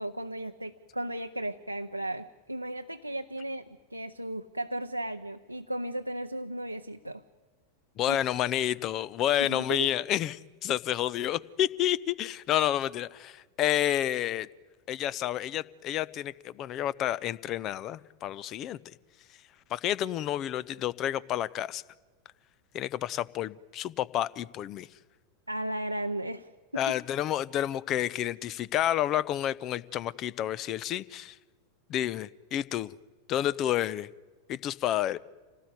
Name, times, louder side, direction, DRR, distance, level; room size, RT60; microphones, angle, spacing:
voice 1, 0.0-7.2 8.1-8.2 9.4-9.9 25.5-27.0, right 1 dB, 90° right, 4 dB, 0.7 m, -35 dB
voice 2, 8.0-14.5 14.9-18.8 19.7-21.8 22.7-24.9 26.8-31.4 31.9-32.9 33.3-34.1 34.5-35.2, left 12 dB, 35° left, 21 dB, 0.7 m, -30 dB
27.0 x 18.0 x 9.5 m, 1.4 s
figure-of-eight pair, 90°, 0 cm